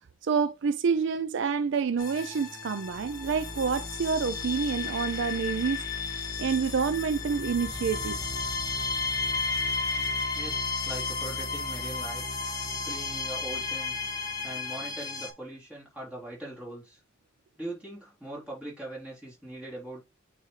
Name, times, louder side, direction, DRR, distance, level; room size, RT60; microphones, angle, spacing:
voice 1, 0.2-5.8 6.1-8.2, right 5 dB, 65° right, 0.4 m, -28 dB
sound 1, 2.0-15.3, left 4 dB, 20° left, 1.7 m, -33 dB
voice 2, 10.3-12.2 12.8-17.0 17.6-20.0, right 1 dB, 5° right, 3.6 m, -41 dB
8.9 x 3.5 x 3.2 m
head